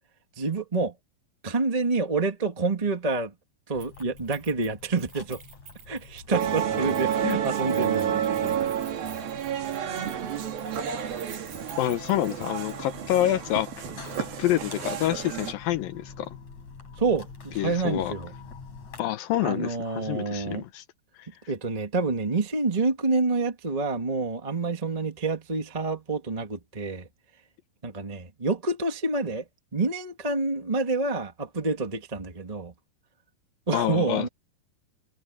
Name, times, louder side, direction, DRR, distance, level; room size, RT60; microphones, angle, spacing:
voice 1, 0.4-0.9 1.4-3.3 3.7-5.4 5.9-8.6 17.0-18.3 19.4-20.6 21.5-27.1 27.8-29.4 29.7-32.7 33.7-34.3, right 3 dB, 20° right, 0.9 m, -28 dB
sound 1, 3.7-19.0, left 4 dB, 50° left, 5.2 m, -46 dB
Keys jangling, 3.8-13.0 13.3-13.4 14.0-14.5 14.8-14.9, right 6 dB, 65° right, 6.8 m, -50 dB
sound 2, 6.3-15.5, right 9 dB, 80° right, 4.0 m, -30 dB
voice 2, 11.8-13.7 14.2-16.3 17.6-18.1 19.0-20.8 33.7-34.3, left 13 dB, 80° left, 2.7 m, -27 dB
omnidirectional pair, 4.1 m